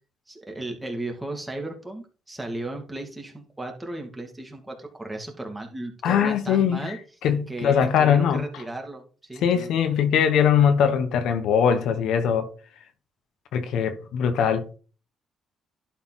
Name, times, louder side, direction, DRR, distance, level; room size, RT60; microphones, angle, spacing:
voice 1, 0.3-7.0 7.5-9.7, right 2 dB, 15° right, 2.5 m, -35 dB
voice 2, 6.0-6.9 7.2-8.4 9.4-12.5 13.5-14.8, left 8 dB, 80° left, 1.3 m, -21 dB
11.5 x 4.3 x 4.2 m
cardioid pair, 90°, 0 cm